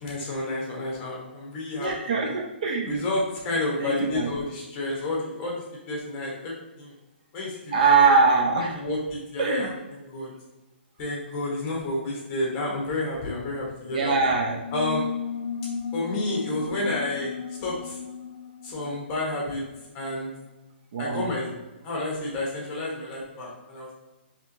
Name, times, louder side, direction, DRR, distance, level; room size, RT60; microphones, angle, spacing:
voice 1, 0.0-2.4 2.8-6.9 7.3-8.1 8.5-10.3 11.0-14.1 14.7-15.1 15.9-17.3 17.6-18.0 18.6-19.6 19.9-20.3 21.0-21.5 21.8-23.9, left 2 dB, 20° left, -3 dB, 1.0 m, -30 dB
voice 2, 1.8-3.0 3.8-4.3 7.7-8.8 9.4-9.7 13.9-14.6 20.9-21.3, right 4 dB, 45° right, 1 dB, 0.5 m, -22 dB
sound 1, 14.6-19.8, left 7 dB, 50° left, 0.4 m, -35 dB
4.3 x 2.9 x 2.7 m, 1.1 s
hypercardioid pair, 165°, 6 cm